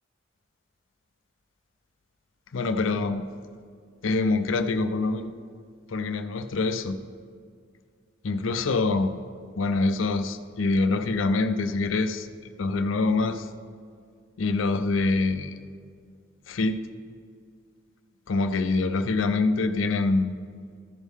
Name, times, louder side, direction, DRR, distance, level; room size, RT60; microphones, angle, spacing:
voice 1, 2.5-3.3 4.0-5.3 5.9-7.0 8.2-9.2 9.5-12.3 12.6-13.5 14.4-15.5 16.5-16.8 18.3-20.4, left 3 dB, 85° left, 9 dB, 0.5 m, -25 dB
14.0 x 6.3 x 3.5 m, 2.2 s
head